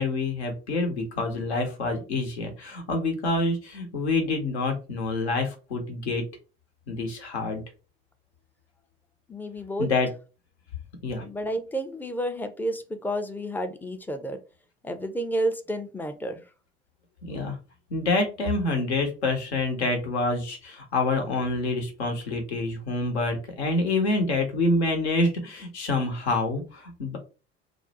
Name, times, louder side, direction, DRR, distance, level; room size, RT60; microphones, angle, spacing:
voice 1, 0.0-6.2 6.9-7.6 9.8-10.1 11.0-11.2 17.2-17.6 17.9-27.2, left 2 dB, 85° left, 3 dB, 0.8 m, -27 dB
voice 2, 9.3-9.9 11.2-14.4 14.8-16.4, right 1 dB, 5° left, 8 dB, 0.3 m, -30 dB
2.5 x 2.0 x 3.9 m, 0.33 s
hypercardioid pair, 70°, 32 cm